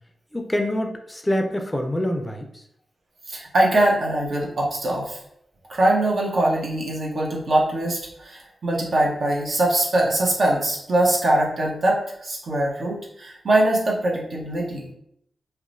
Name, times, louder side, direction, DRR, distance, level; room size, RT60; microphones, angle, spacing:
voice 1, 0.3-2.5, left 1 dB, 15° left, 4 dB, 0.4 m, -25 dB
voice 2, 3.3-5.2 5.7-14.9, right 1 dB, 65° right, -2 dB, 0.7 m, -22 dB
2.9 x 2.1 x 2.5 m, 0.72 s
cardioid pair, 50°, 0 cm